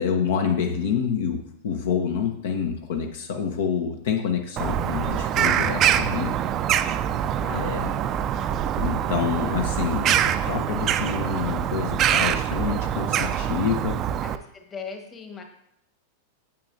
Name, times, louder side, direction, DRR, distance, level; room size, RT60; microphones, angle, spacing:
voice 1, 0.0-6.3 7.5-7.9 8.8-14.0, left 6 dB, 60° left, 4 dB, 0.9 m, -27 dB
Bird vocalization bird call bird song, 4.6-14.4, right 10 dB, 35° right, 0.4 m, -24 dB
voice 2, 7.4-7.8 14.2-15.4, left 5 dB, 25° left, 4 dB, 1.4 m, -39 dB
8.6 x 7.3 x 2.6 m, 0.72 s
figure-of-eight pair, 90°, 0 cm